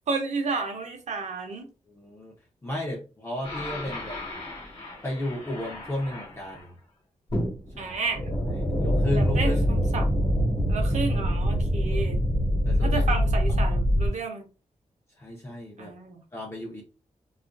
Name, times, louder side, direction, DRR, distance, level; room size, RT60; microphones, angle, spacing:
voice 1, 0.1-1.7 7.8-8.2 9.1-10.3 10.7-12.2 12.7-14.5 15.8-16.2, right 4 dB, 65° right, 4 dB, 0.7 m, -31 dB
voice 2, 1.9-2.3 2.6-4.2 5.0-6.7 7.8-8.0 8.4-9.8 12.7-13.0 13.6-13.8 15.2-15.9 16.3-16.8, left 1 dB, 20° left, -2 dB, 0.6 m, -33 dB
sound 1, 3.4-6.6 7.3-14.1, equal, 45° left, 1.2 m, -25 dB
2.5 x 2.4 x 2.2 m, 0.32 s
wide cardioid pair, 150°, 13 cm